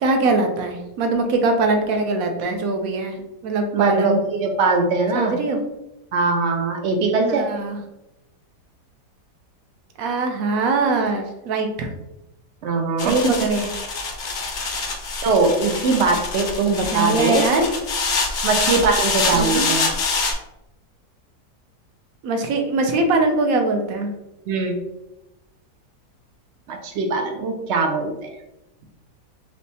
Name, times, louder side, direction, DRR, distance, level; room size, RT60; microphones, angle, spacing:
voice 1, 0.0-4.2 5.1-5.6 7.3-7.8 10.0-11.9 13.0-13.7 16.9-17.7 19.4-19.7 22.2-24.1, right 3 dB, 65° right, 4 dB, 1.0 m, -22 dB
voice 2, 3.7-5.4 6.1-7.5 12.6-13.2 15.2-17.4 18.4-19.9 24.5-24.8 26.7-28.1, right 3 dB, 80° right, 4 dB, 0.6 m, -21 dB
sound 1, 13.0-20.3, left 4 dB, 75° left, 0.5 m, -25 dB
3.3 x 3.1 x 4.0 m, 0.92 s
omnidirectional pair, 1.8 m